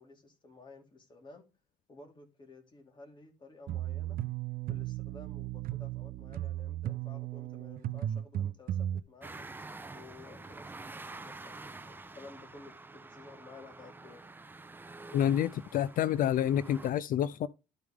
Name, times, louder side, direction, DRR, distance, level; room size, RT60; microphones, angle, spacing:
voice 1, 0.0-1.4 1.9-4.2 4.7-9.5 9.9-14.2, left 3 dB, 30° left, 2.6 m, -53 dB
sound 1, 3.7-9.0, right 12 dB, 60° right, 0.5 m, -35 dB
sound 2, 9.2-16.9, right 3 dB, 10° right, 0.6 m, -48 dB
voice 2, 15.1-17.5, left 10 dB, 55° left, 0.4 m, -28 dB
12.5 x 4.8 x 3.5 m
cardioid pair, 110°, 17 cm